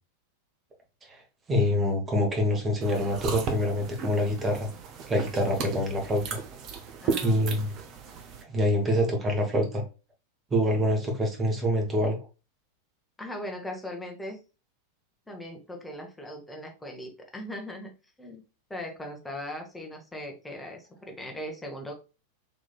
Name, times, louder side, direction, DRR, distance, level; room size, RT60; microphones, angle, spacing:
voice 1, 1.5-4.7 5.1-6.4 7.2-7.7 8.5-9.8 10.5-12.2, equal, 20° right, 1.2 m, -26 dB
sound 1, 2.8-8.4, right 5 dB, 35° right, 0.7 m, -35 dB
voice 2, 7.0-7.5 13.2-14.4 15.3-17.9 18.2-18.4 18.7-21.9, left 1 dB, 10° left, 1.0 m, -39 dB
4.1 x 3.0 x 2.2 m
figure-of-eight pair, 90°, 0 cm